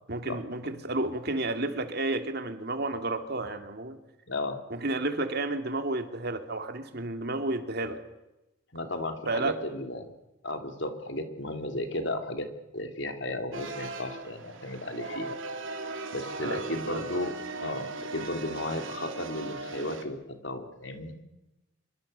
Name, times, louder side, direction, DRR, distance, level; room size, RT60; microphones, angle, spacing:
voice 1, 0.1-4.0 4.7-8.0 9.3-9.5 16.4-17.0, right 2 dB, 55° right, 7 dB, 2.5 m, -31 dB
voice 2, 4.3-4.6 8.7-10.1 10.4-12.5 12.7-15.3 16.1-20.2 20.4-21.1, left 1 dB, 65° left, 6 dB, 3.3 m, -34 dB
sound 1, 13.5-20.0, right 3 dB, 75° right, 3.2 m, -38 dB
26.5 x 23.0 x 6.9 m, 0.95 s
head